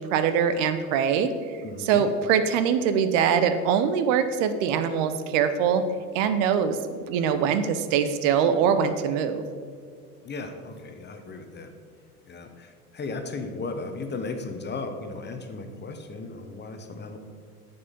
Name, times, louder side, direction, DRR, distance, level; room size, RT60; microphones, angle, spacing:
voice 1, 0.0-5.8 6.1-6.8 7.1-9.4, right 7 dB, 55° right, 10 dB, 0.9 m, -23 dB
voice 2, 1.6-2.1 10.2-11.7 12.3-17.2, left 3 dB, 25° left, 6 dB, 1.1 m, -36 dB
9.9 x 7.0 x 5.3 m, 2.1 s
hypercardioid pair, 80°, 45 cm